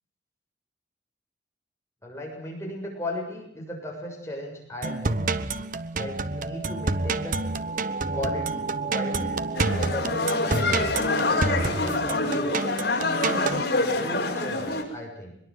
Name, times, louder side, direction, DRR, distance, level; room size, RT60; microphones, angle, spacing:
voice 1, 2.0-5.3 5.9-7.4 8.1-10.9 11.3-12.5 12.9-15.4, left 1 dB, 15° left, 0 dB, 7.0 m, -36 dB
sound 1, 4.8-13.6, right 3 dB, 50° right, 1.1 m, -28 dB
sound 2, 9.5-14.8, left 2 dB, 60° left, 5.9 m, -26 dB
24.5 x 22.0 x 7.9 m, 0.72 s
head